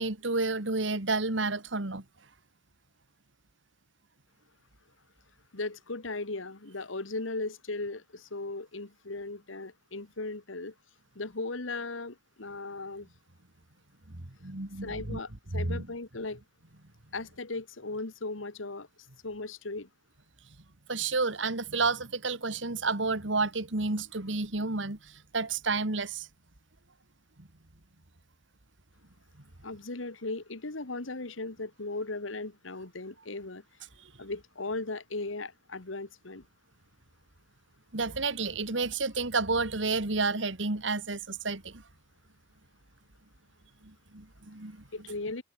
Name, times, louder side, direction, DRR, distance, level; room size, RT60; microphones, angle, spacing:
voice 1, 0.0-2.0 14.1-15.2 15.5-15.9 20.9-26.3 27.4-27.5 37.9-41.8 43.8-44.8, right 3 dB, 65° right, 2.1 m, -31 dB
voice 2, 5.5-10.7 11.2-13.1 14.8-16.4 17.1-18.9 19.2-19.9 29.6-33.6 34.2-36.5 44.9-45.4, left 3 dB, 90° left, 1.9 m, -37 dB
head